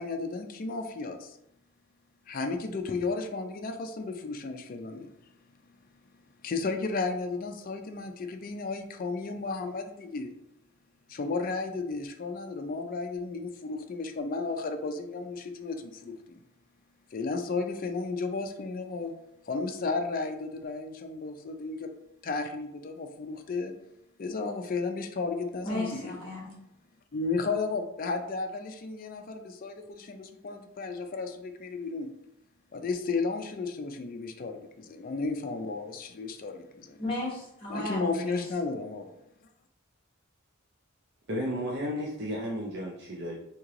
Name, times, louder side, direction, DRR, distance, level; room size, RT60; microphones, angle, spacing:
voice 1, 0.0-1.4 2.3-5.1 6.4-10.3 11.1-16.4 17.1-19.1 19.5-21.9 22.2-23.7 24.2-26.2 27.1-32.1 32.7-37.0 37.7-39.1, left 3 dB, 40° left, 5 dB, 0.4 m, -33 dB
voice 2, 25.6-26.5 37.0-38.4, left 1 dB, 25° left, -4 dB, 1.2 m, -34 dB
voice 3, 41.3-43.3, equal, 55° right, -3 dB, 0.5 m, -33 dB
3.1 x 2.9 x 3.6 m, 0.79 s
head